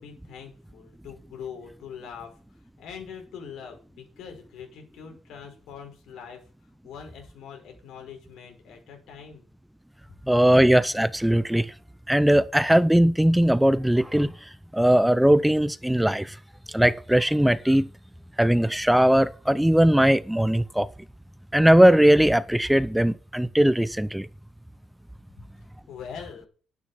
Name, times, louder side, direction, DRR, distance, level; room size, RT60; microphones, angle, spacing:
voice 1, 0.0-6.4 6.8-9.5 25.9-26.5, left 7 dB, 75° left, 5.6 m, -43 dB
voice 2, 10.3-11.7 12.1-16.4 16.7-17.9 18.4-20.9 21.5-24.3, right 1 dB, 5° right, 0.6 m, -20 dB
9.6 x 9.5 x 5.7 m
cardioid pair, 110°, 0 cm